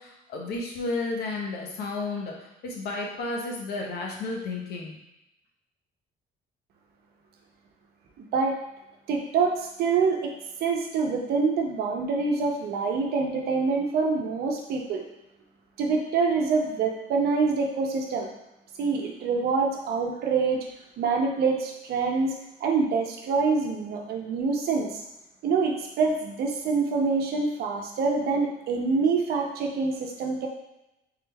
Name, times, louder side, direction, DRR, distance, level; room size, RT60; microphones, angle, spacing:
voice 1, 0.0-5.0, left 3 dB, 70° left, 0 dB, 1.0 m, -32 dB
voice 2, 8.2-8.5 9.1-10.3 10.6-15.0 15.8-18.3 18.8-20.6 21.0-22.3 22.6-25.0 25.4-30.5, right 4 dB, 70° right, 1 dB, 0.8 m, -26 dB
3.8 x 3.3 x 3.4 m, 0.89 s
cardioid pair, 110°, 17 cm